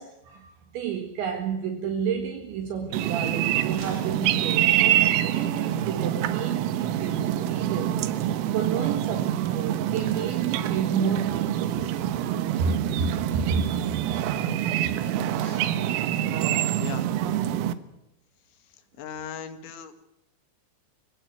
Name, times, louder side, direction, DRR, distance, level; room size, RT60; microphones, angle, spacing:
voice 1, 0.0-8.0 8.5-11.9 12.6-13.8, right 6 dB, 65° right, 4 dB, 4.0 m, -30 dB
sound 1, 2.9-17.7, right 11 dB, 85° right, 3.8 m, -26 dB
voice 2, 18.7-19.9, left 8 dB, 70° left, 9 dB, 3.9 m, -39 dB
25.5 x 17.0 x 9.4 m, 0.82 s
omnidirectional pair, 5.9 m